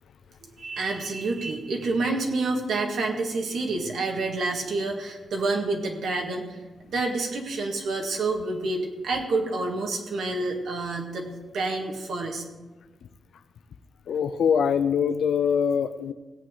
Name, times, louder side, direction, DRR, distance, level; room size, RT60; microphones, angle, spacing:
voice 1, 0.6-6.4 6.8-11.3 11.5-12.4, right 3 dB, 80° right, 1 dB, 1.9 m, -28 dB
voice 2, 14.1-16.1, left 7 dB, 80° left, 10 dB, 0.5 m, -23 dB
17.5 x 8.6 x 3.8 m, 1.3 s
wide cardioid pair, 130°, 0 cm